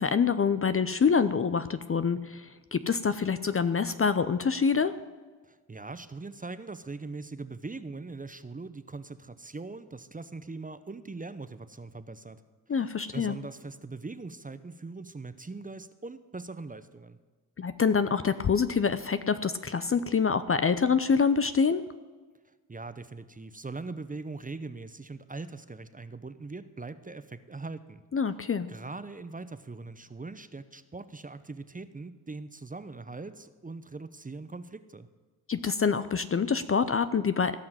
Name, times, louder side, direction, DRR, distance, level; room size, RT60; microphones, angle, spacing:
voice 1, 0.0-4.9 12.7-13.4 17.6-21.8 28.1-28.7 35.5-37.6, left 6 dB, 30° left, 12 dB, 0.6 m, -26 dB
voice 2, 5.4-12.4 12.7-17.2 22.7-28.0 28.7-35.1, right 3 dB, 20° right, 12 dB, 0.7 m, -41 dB
17.0 x 5.8 x 7.7 m, 1.4 s
hypercardioid pair, 40°, 47 cm